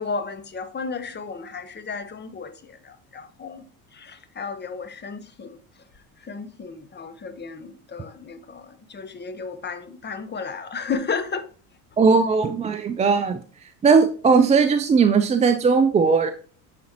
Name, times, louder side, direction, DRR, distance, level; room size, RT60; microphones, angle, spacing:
voice 1, 0.0-3.6 3.9-5.6 6.3-11.4, left 5 dB, 25° left, 0.8 m, -33 dB
voice 2, 12.0-13.4 13.8-16.3, right 5 dB, 20° right, 0.3 m, -18 dB
8.4 x 4.2 x 2.8 m
supercardioid pair, 85°, 42 cm